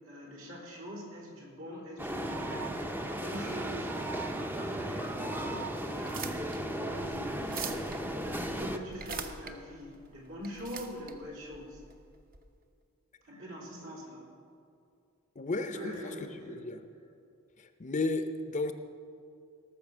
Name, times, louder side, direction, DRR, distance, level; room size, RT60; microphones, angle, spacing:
voice 1, 0.0-3.9 4.2-7.9 8.2-11.8 13.2-14.3 15.7-17.1, equal, 75° right, -3 dB, 3.7 m, -43 dB
sound 1, 2.0-8.8, right 1 dB, 10° right, 0.6 m, -35 dB
sound 2, 5.9-12.4, right 5 dB, 45° right, 0.8 m, -44 dB
voice 2, 15.4-16.8 17.8-18.7, left 2 dB, 35° left, 8 dB, 0.6 m, -33 dB
18.0 x 7.1 x 6.1 m, 2.5 s
head